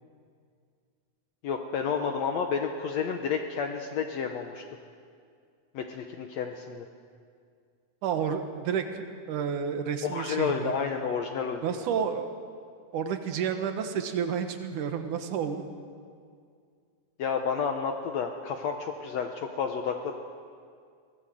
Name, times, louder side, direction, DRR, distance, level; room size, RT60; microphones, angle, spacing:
voice 1, 1.4-4.6 5.7-6.9 10.0-11.7 17.2-20.1, left 6 dB, 65° left, 4 dB, 2.0 m, -30 dB
voice 2, 8.0-10.7 11.6-12.3 12.9-15.6, right 7 dB, 75° right, 7 dB, 2.9 m, -30 dB
23.0 x 18.0 x 7.8 m, 2.2 s
omnidirectional pair, 3.6 m